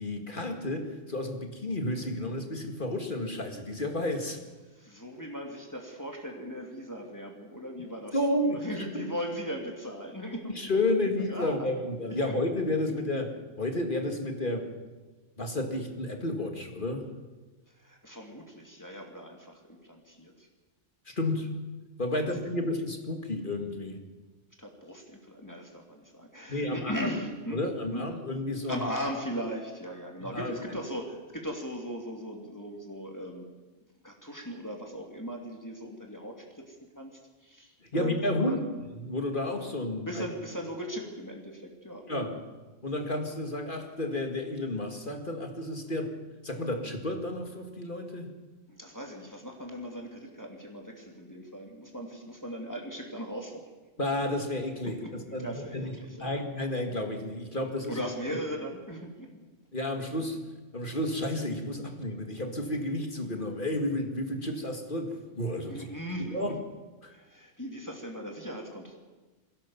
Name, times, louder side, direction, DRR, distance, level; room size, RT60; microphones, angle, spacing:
voice 1, 0.0-4.4 8.1-8.6 8.9-9.1 10.6-14.7 15.4-17.1 21.1-21.6 22.0-24.0 26.5-27.1 27.5-28.8 30.2-30.8 37.9-38.6 39.0-40.2 42.1-42.4 42.8-46.2 46.4-48.3 54.0-58.0 58.3-58.4 59.7-60.4 60.7-65.9 66.3-66.6 67.0-67.1, left 1 dB, 40° left, 4 dB, 2.2 m, -31 dB
voice 2, 4.7-11.7 12.1-12.3 17.7-20.5 22.2-22.3 22.5-22.7 24.6-27.6 27.9-28.0 28.7-33.5 34.0-38.7 40.1-42.0 48.7-53.7 55.0-56.4 57.9-59.3 65.7-66.6 67.1-69.0, equal, 15° left, 1 dB, 2.7 m, -38 dB
23.0 x 16.0 x 7.2 m, 1.2 s
omnidirectional pair, 1.3 m